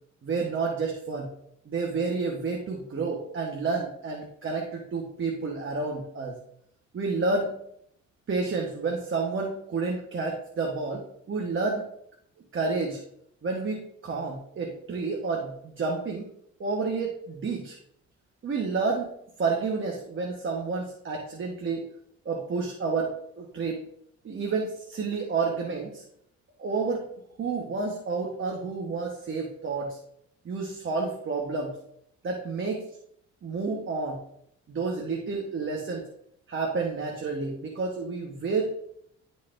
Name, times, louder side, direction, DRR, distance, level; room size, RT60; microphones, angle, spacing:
voice 1, 0.2-1.3 1.7-6.3 6.9-7.5 8.3-11.8 12.5-13.0 13.4-16.3 16.6-17.8 18.4-19.1 19.4-21.9 22.2-23.8 24.2-26.0 26.6-27.0 27.4-30.0 30.4-31.8 32.2-32.8 33.4-34.2 34.7-36.0 36.5-38.7, right 4 dB, 40° right, 0 dB, 1.2 m, -30 dB
11.0 x 4.1 x 2.6 m, 0.72 s
cardioid pair, 90°, 30 cm